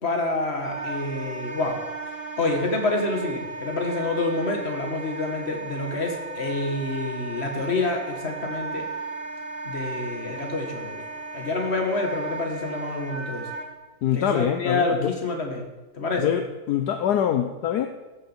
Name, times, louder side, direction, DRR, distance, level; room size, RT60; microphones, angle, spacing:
voice 1, 0.0-1.8 2.4-8.8 9.6-11.1 11.3-13.5 14.1-15.7 15.9-16.3, left 2 dB, 30° left, 3 dB, 1.9 m, -27 dB
Wind instrument woodwind instrument, 0.6-13.7, right 3 dB, 30° right, 1.9 m, -35 dB
voice 2, 14.0-15.1 16.2-17.9, left 10 dB, 65° left, 7 dB, 1.1 m, -24 dB
14.0 x 6.8 x 7.3 m, 1.1 s
omnidirectional pair, 2.2 m